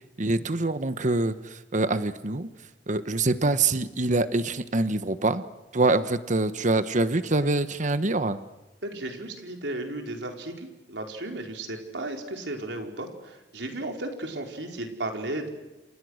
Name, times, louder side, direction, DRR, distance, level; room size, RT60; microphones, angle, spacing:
voice 1, 0.2-2.5 2.9-5.4 5.7-8.4, right 2 dB, 45° right, 12 dB, 1.2 m, -25 dB
voice 2, 8.8-15.5, right 2 dB, 85° right, 3 dB, 4.5 m, -34 dB
29.0 x 28.5 x 6.5 m, 1.0 s
head